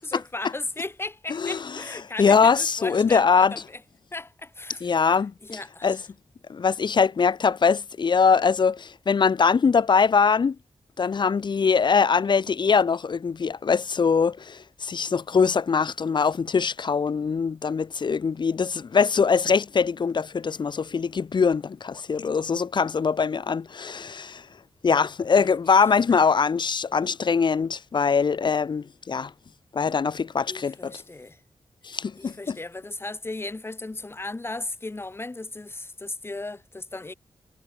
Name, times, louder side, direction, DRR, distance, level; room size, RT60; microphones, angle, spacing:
voice 1, 0.0-3.8 4.1-5.1 5.4-6.0 25.3-25.8 26.1-26.2 30.5-31.4 32.1-37.1, left 2 dB, 25° left, 1.4 m, -36 dB
voice 2, 1.3-1.8 2.2-3.5 4.8-5.3 5.8-6.0 6.5-10.6 11.0-24.5 24.8-29.3 29.7-31.0 31.8-32.6, left 5 dB, 50° left, 0.7 m, -22 dB
wide cardioid pair, 80°, 10 cm